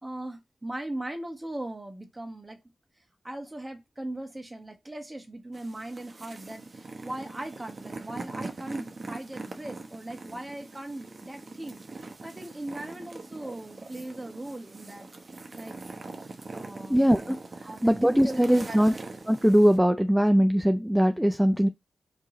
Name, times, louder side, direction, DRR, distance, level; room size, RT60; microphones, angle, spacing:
voice 1, 0.0-2.6 3.2-11.8 12.2-15.1 15.5-15.8 16.5-17.0 17.6-19.0, right 1 dB, 20° right, 1.1 m, -38 dB
sound 1, 5.5-19.8, right 3 dB, 45° right, 0.8 m, -42 dB
voice 2, 16.9-17.4 17.8-18.9 19.3-21.7, equal, 5° right, 0.3 m, -21 dB
4.7 x 3.0 x 3.7 m
wide cardioid pair, 80°, 0 cm